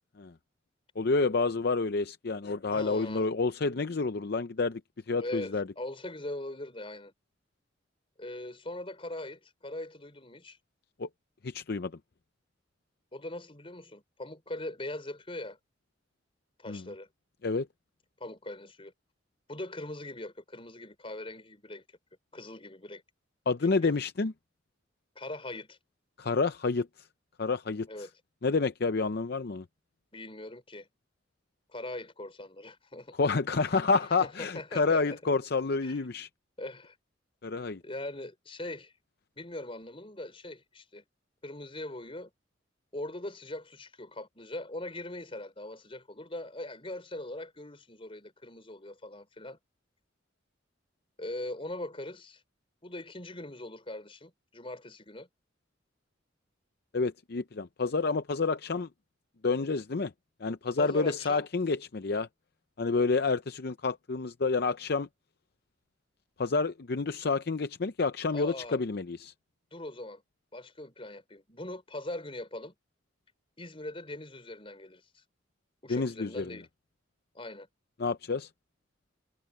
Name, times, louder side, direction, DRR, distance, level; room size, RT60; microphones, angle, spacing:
voice 1, 1.0-4.8 5.1-5.6 11.0-11.1 11.4-11.9 16.7-16.8 17.4-17.7 23.5-24.3 26.2-26.9 27.4-27.9 28.4-29.6 33.2-36.3 37.4-37.8 56.9-58.9 59.4-60.1 60.4-62.3 62.8-65.1 66.4-69.3 75.9-76.5 78.0-78.5, left 4 dB, 55° left, 0.6 m, -29 dB
voice 2, 2.7-3.3 5.1-7.1 8.2-10.6 13.1-15.6 16.6-17.1 18.2-18.9 19.5-21.8 22.3-23.0 23.6-23.9 25.1-25.8 27.9-28.1 30.1-30.9 31.7-33.1 33.6-33.7 34.2-35.2 35.8-36.0 36.6-37.0 37.8-38.9 39.4-41.0 41.4-42.3 42.9-49.6 51.2-52.4 52.8-55.3 60.8-61.5 68.3-68.8 69.7-70.2 70.5-72.7 73.6-75.2 75.8-76.7 77.3-77.7, left 1 dB, 30° left, 4.7 m, -41 dB
head